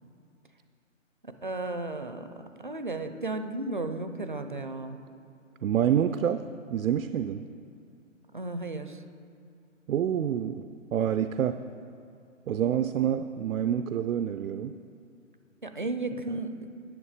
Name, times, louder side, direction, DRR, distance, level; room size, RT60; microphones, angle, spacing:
voice 1, 1.4-5.0 8.3-9.0 15.6-16.7, right 2 dB, 40° right, 8 dB, 0.4 m, -34 dB
voice 2, 5.6-7.5 9.9-11.6 12.5-14.8, right 9 dB, 90° right, 10 dB, 0.5 m, -27 dB
10.0 x 7.2 x 5.0 m, 2.5 s
hypercardioid pair, 175°, 39 cm